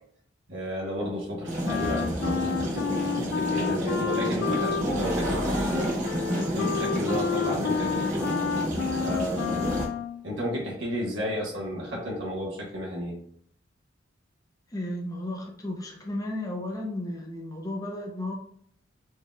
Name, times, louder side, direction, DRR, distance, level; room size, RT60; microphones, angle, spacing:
voice 1, 0.5-5.9 6.4-8.3 9.0-9.7 10.2-13.2, equal, 70° right, -4 dB, 1.2 m, -32 dB
sound 1, 1.5-9.9, equal, 40° right, 1.1 m, -29 dB
Wind instrument woodwind instrument, 1.6-10.2, left 6 dB, 65° left, 0.3 m, -31 dB
voice 2, 14.7-18.3, left 1 dB, 20° left, 0 dB, 0.7 m, -34 dB
4.4 x 3.6 x 2.3 m, 0.63 s
head